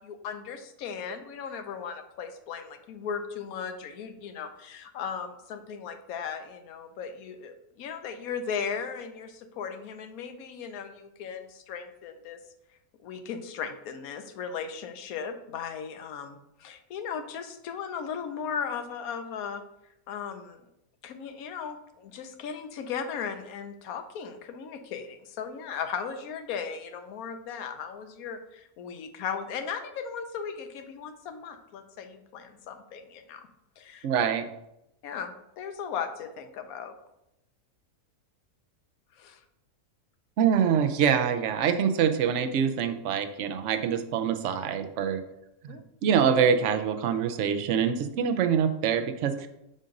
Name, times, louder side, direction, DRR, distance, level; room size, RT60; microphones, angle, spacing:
voice 1, 0.0-12.4 13.0-19.6 20.1-20.6 21.0-33.5 33.8-34.1 35.0-36.9 39.2-39.4 45.7-45.8, left 6 dB, 80° left, 8 dB, 1.1 m, -37 dB
voice 2, 34.0-34.4 40.4-45.2 46.0-49.5, right 7 dB, 65° right, 8 dB, 0.8 m, -25 dB
7.6 x 2.5 x 5.2 m, 0.85 s
omnidirectional pair, 1.5 m